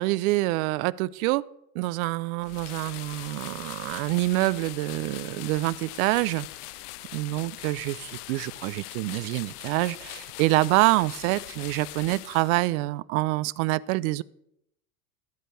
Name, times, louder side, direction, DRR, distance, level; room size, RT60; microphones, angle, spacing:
voice 1, 0.0-1.4 1.7-6.5 7.1-14.2, right 20 dB, 65° right, 19 dB, 0.5 m, -26 dB
sound 1, 2.4-12.8, left 18 dB, 90° left, 0.5 m, -42 dB
13.0 x 4.5 x 8.0 m, 0.78 s
supercardioid pair, 130°, 45 cm